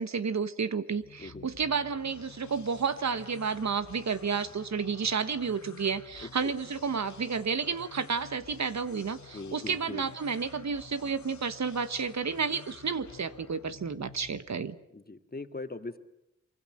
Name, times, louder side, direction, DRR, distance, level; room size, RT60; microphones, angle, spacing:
voice 1, 0.0-14.8, right 5 dB, 65° right, 12 dB, 1.4 m, -31 dB
sound 1, 0.9-14.7, left 5 dB, 75° left, 2.4 m, -51 dB
voice 2, 9.3-10.0 14.9-16.0, left 3 dB, 30° left, 7 dB, 2.2 m, -40 dB
25.0 x 24.0 x 7.8 m, 0.83 s
cardioid pair, 55°, 30 cm